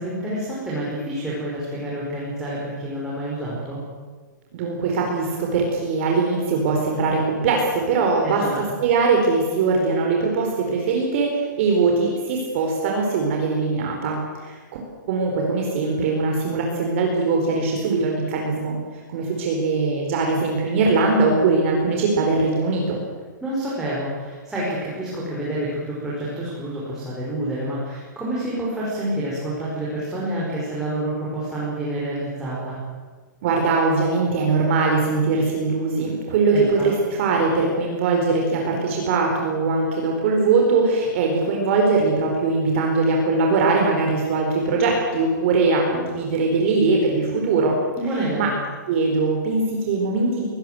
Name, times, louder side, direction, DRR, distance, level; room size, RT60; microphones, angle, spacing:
voice 1, 0.0-3.8 8.2-8.6 23.4-32.8 36.5-36.9 48.0-48.5, right 1 dB, 5° right, -8 dB, 5.9 m, -28 dB
voice 2, 4.5-8.5 8.8-14.6 15.1-18.8 19.1-23.0 33.4-47.8 48.4-48.5 48.9-50.5, right 3 dB, 40° right, 0 dB, 4.6 m, -21 dB
24.0 x 19.5 x 7.9 m, 1.4 s
hypercardioid pair, 160°, 10 cm